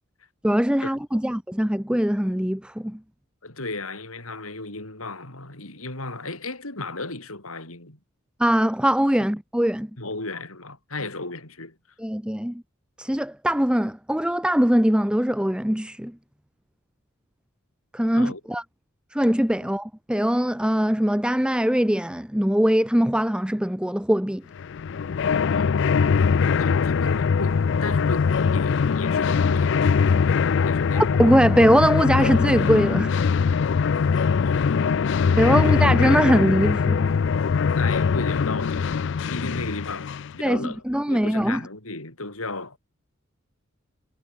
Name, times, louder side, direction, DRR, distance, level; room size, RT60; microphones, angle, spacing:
voice 1, 0.4-3.0 8.4-9.9 12.0-12.6 13.0-16.2 17.9-18.6 19.1-24.4 30.9-33.2 35.4-37.1 40.4-41.6, equal, 5° right, 0.9 m, -21 dB
voice 2, 3.4-8.0 10.0-11.8 18.1-18.4 25.5-30.0 30.7-31.5 34.4-35.0 35.6-35.8 37.7-42.8, left 2 dB, 85° left, 7.1 m, -35 dB
sound 1, 24.6-40.4, left 5 dB, 60° left, 0.4 m, -22 dB
head